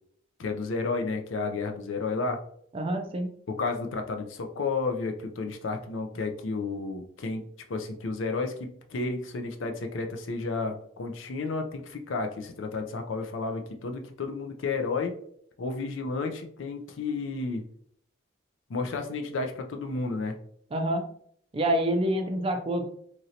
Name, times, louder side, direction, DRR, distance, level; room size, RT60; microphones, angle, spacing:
voice 1, 0.4-2.4 3.5-7.4 7.7-15.2 15.6-17.6 18.7-20.4, left 3 dB, 75° left, 5 dB, 0.5 m, -32 dB
voice 2, 2.7-3.3 20.7-21.1 21.5-22.9, right 1 dB, 30° right, 5 dB, 0.4 m, -27 dB
3.0 x 2.6 x 2.7 m, 0.66 s
head